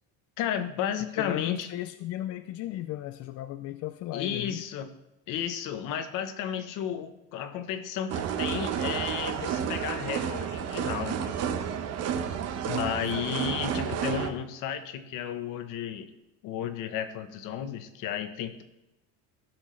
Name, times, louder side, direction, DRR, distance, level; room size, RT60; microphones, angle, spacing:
voice 1, 0.4-1.7 4.1-4.9 5.3-11.3 12.8-16.1 16.4-18.6, left 9 dB, 65° left, 9 dB, 1.1 m, -33 dB
voice 2, 1.1-4.6 12.6-13.1, left 14 dB, 50° left, 10 dB, 0.4 m, -36 dB
sound 1, 8.1-14.3, right 8 dB, 50° right, 0.9 m, -31 dB
15.0 x 6.2 x 3.2 m, 0.97 s
cardioid pair, 140°, 33 cm